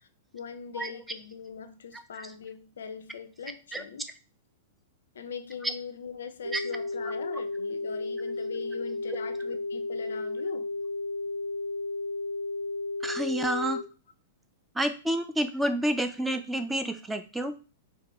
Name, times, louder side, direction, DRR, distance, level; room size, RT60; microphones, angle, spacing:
voice 1, 0.3-4.1 5.1-10.7, left 6 dB, 65° left, 9 dB, 0.4 m, -41 dB
voice 2, 1.9-2.3 3.7-3.8 5.6-5.7 6.5-6.6 13.0-13.8 14.7-17.5, right 1 dB, 5° right, 8 dB, 0.3 m, -29 dB
sound 1, 6.4-13.8, left 3 dB, 85° right, 0.5 m, -33 dB
4.0 x 2.2 x 3.0 m, 0.34 s
figure-of-eight pair, 100°, 0 cm